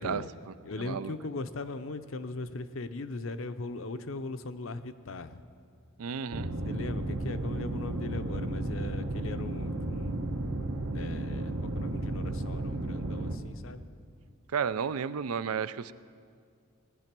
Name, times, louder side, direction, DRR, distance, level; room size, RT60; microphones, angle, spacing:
voice 1, 0.0-1.2 6.0-6.5 14.5-15.9, right 6 dB, 90° right, 15 dB, 0.5 m, -33 dB
voice 2, 0.6-5.4 6.7-10.2 10.9-13.8, left 3 dB, 65° left, 10 dB, 0.7 m, -39 dB
sound 1, 6.3-13.4, right 1 dB, 75° right, 1.0 m, -33 dB
18.5 x 10.5 x 6.0 m, 2.2 s
head